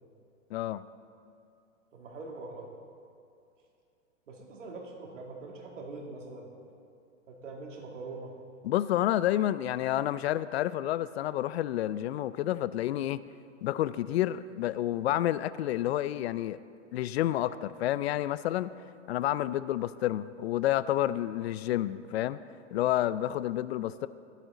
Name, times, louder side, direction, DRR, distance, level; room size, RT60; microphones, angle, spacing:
voice 1, 0.5-0.8 8.6-13.2 13.6-16.6 16.9-18.7 19.1-22.4 22.7-24.1, left 13 dB, 55° left, 16 dB, 0.5 m, -29 dB
voice 2, 1.9-2.7 4.3-6.5 7.3-8.3, right 3 dB, 75° right, 0 dB, 2.6 m, -43 dB
21.0 x 8.5 x 4.0 m, 2.5 s
hypercardioid pair, 125°, 37 cm